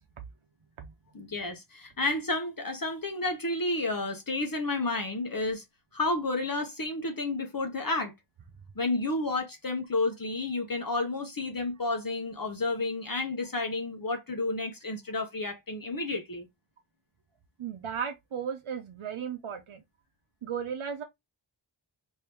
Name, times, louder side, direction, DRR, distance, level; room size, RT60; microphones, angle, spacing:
voice 1, 1.1-5.6 5.9-8.1 8.8-16.5, left 2 dB, 45° left, 0.8 m, -31 dB
voice 2, 17.6-19.8 20.4-21.0, right 7 dB, 90° right, 0.6 m, -35 dB
2.9 x 2.7 x 3.3 m
wide cardioid pair, 50°, 48 cm